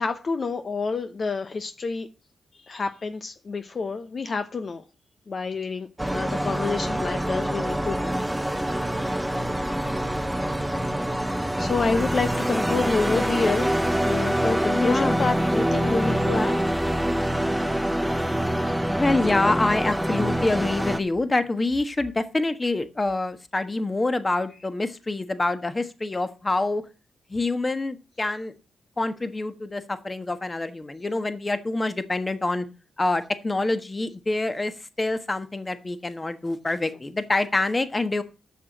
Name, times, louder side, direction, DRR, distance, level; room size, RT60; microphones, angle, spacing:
voice 1, 0.0-2.1 2.5-4.8 5.3-8.2 10.5-10.7 11.3-16.6 18.6-18.8, left 4 dB, 50° left, 8 dB, 0.9 m, -28 dB
sound 1, 6.0-21.0, right 1 dB, 10° right, 0.8 m, -25 dB
voice 2, 14.7-15.2 19.0-26.8 27.3-28.5 29.0-32.6 33.0-38.2, left 2 dB, 30° left, 11 dB, 1.4 m, -26 dB
7.2 x 6.6 x 7.2 m, 0.33 s
cardioid pair, 55°, 0 cm